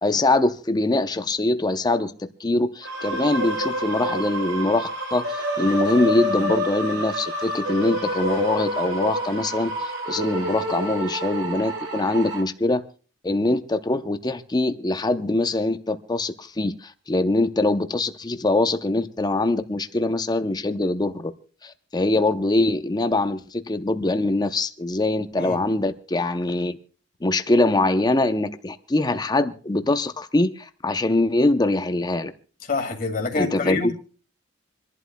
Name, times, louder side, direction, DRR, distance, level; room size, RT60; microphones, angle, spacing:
voice 1, 0.0-12.8 13.2-21.3 21.6-26.8 27.2-32.3 33.4-33.9, left 2 dB, 20° left, 10 dB, 0.6 m, -23 dB
sound 1, 2.8-12.4, right 1 dB, 70° right, 3.7 m, -28 dB
voice 2, 32.6-33.9, left 3 dB, 45° left, 3 dB, 2.1 m, -26 dB
27.5 x 11.5 x 2.2 m, 0.39 s
head